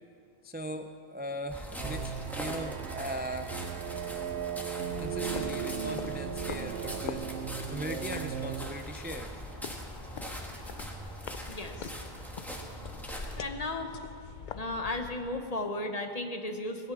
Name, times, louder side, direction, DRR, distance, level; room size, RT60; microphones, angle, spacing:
voice 1, 0.4-3.6 5.0-7.3 7.7-9.3, equal, 15° right, 7 dB, 0.3 m, -39 dB
sound 1, 1.5-13.4, equal, ahead, 1.5 m, -41 dB
sound 2, 1.8-8.7, right 8 dB, 85° right, 0.9 m, -37 dB
sound 3, 4.6-15.5, left 7 dB, 55° left, 0.6 m, -45 dB
voice 2, 11.5-11.9 13.1-14.0 14.5-16.9, left 2 dB, 40° left, 5 dB, 1.1 m, -35 dB
17.0 x 10.5 x 6.0 m, 2.5 s
omnidirectional pair, 1.0 m